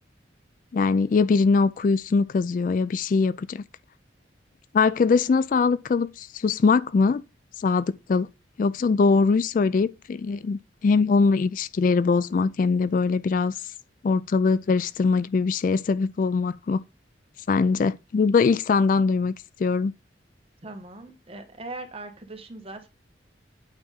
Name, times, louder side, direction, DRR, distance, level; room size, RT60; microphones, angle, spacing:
voice 1, 0.7-3.6 4.7-7.2 7.6-8.3 8.6-13.6 14.0-16.8 17.5-19.9, left 4 dB, 45° left, 0.3 m, -22 dB
voice 2, 20.6-22.9, right 2 dB, 30° right, 1.3 m, -40 dB
8.8 x 3.5 x 5.7 m
head